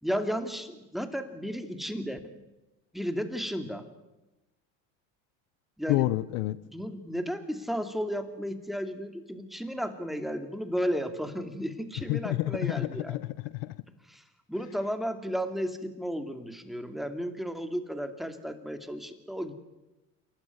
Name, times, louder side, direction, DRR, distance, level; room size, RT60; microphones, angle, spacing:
voice 1, 0.0-2.2 2.9-3.9 5.8-6.1 6.7-13.2 14.1-14.2 14.5-19.5, equal, ahead, 7 dB, 2.5 m, -33 dB
voice 2, 5.9-6.6 12.1-13.7, left 18 dB, 80° left, 17 dB, 0.9 m, -29 dB
28.0 x 12.0 x 9.6 m, 1.0 s
supercardioid pair, 90°, 39 cm